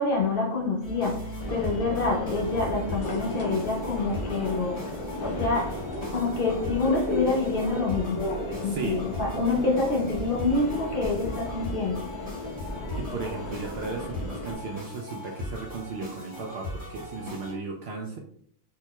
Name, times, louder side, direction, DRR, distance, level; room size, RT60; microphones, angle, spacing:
voice 1, 0.0-5.8 6.1-8.2 8.6-12.0, left 3 dB, 45° left, -2 dB, 0.9 m, -27 dB
sound 1, 0.8-17.5, left 2 dB, 25° right, 1.5 m, -39 dB
Subway metro underground, 1.4-14.5, left 1 dB, 30° left, 0.6 m, -35 dB
sound 2, 3.0-3.8 5.9-6.5 8.0-8.1, left 2 dB, 75° left, 1.2 m, -39 dB
voice 2, 8.6-9.0 13.0-18.2, right 4 dB, 65° right, 0 dB, 0.7 m, -35 dB
4.3 x 2.8 x 2.2 m, 0.63 s
omnidirectional pair, 1.4 m